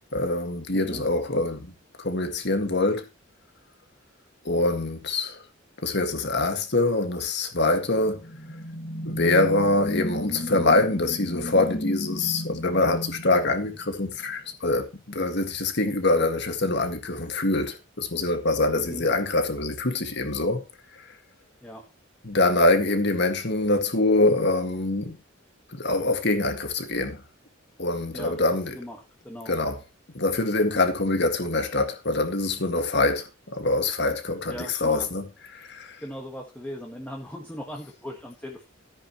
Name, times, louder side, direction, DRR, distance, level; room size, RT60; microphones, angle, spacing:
voice 1, 0.1-1.7 2.0-3.1 4.4-5.4 5.8-8.2 9.1-20.6 20.9-21.0 22.2-25.2 25.7-27.2 27.8-28.8 29.5-29.8 30.1-35.3 35.5-36.0, left 2 dB, 55° left, 2.0 m, -24 dB
voice 2, 0.7-1.0 18.8-19.1 21.6-21.8 28.1-28.3 28.7-29.0 29.2-29.6 34.5-35.1 36.0-38.6, equal, 10° left, 1.6 m, -38 dB
sound 1, 8.0-14.3, left 1 dB, 35° left, 1.9 m, -34 dB
14.0 x 9.7 x 3.1 m
head